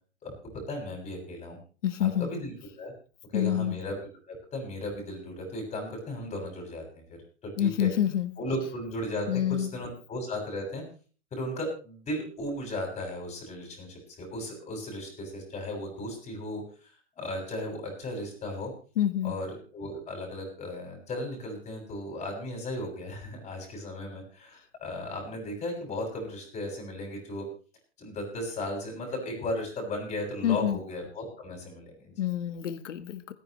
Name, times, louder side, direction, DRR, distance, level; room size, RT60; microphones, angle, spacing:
voice 1, 0.2-1.6 2.0-2.9 3.3-7.0 7.4-7.9 8.4-10.8 11.3-18.7 19.2-19.5 19.7-27.5 28.0-32.1, left 1 dB, 20° left, 1 dB, 7.0 m, -36 dB
voice 2, 1.8-2.3 3.3-3.8 7.6-8.3 9.3-9.7 19.0-19.4 30.4-30.8 32.2-33.3, left 10 dB, 80° left, 12 dB, 1.6 m, -27 dB
28.0 x 9.9 x 3.2 m, 0.38 s
hypercardioid pair, 135°, 36 cm